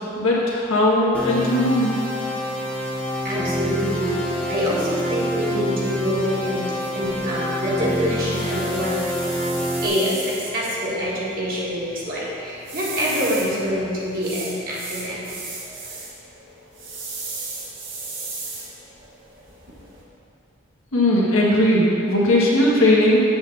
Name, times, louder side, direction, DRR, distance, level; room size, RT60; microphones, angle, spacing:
voice 1, 0.2-1.9 20.9-23.3, left 1 dB, 85° left, -5 dB, 1.7 m, -18 dB
sound 1, 1.1-9.9, equal, 5° left, 0.7 m, -27 dB
voice 2, 3.2-9.0 9.8-15.3 15.6-15.8, equal, 45° right, -7 dB, 1.8 m, -26 dB
sound 2, 7.0-20.0, right 3 dB, 60° right, 1.5 m, -37 dB
7.9 x 3.9 x 6.8 m, 2.8 s
head